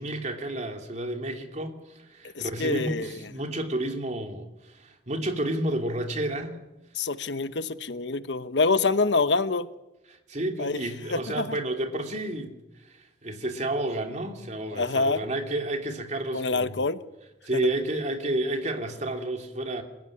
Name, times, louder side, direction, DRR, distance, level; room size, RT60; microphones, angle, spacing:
voice 1, 0.0-6.6 10.3-12.5 12.9-16.8 17.4-19.8, right 1 dB, 40° right, 4 dB, 3.0 m, -31 dB
voice 2, 2.3-3.2 6.9-9.7 10.6-10.8 11.1-11.6 14.7-15.2 16.3-17.0 17.5-17.6, left 3 dB, 85° left, 12 dB, 1.1 m, -26 dB
27.5 x 15.5 x 10.0 m, 1.0 s
head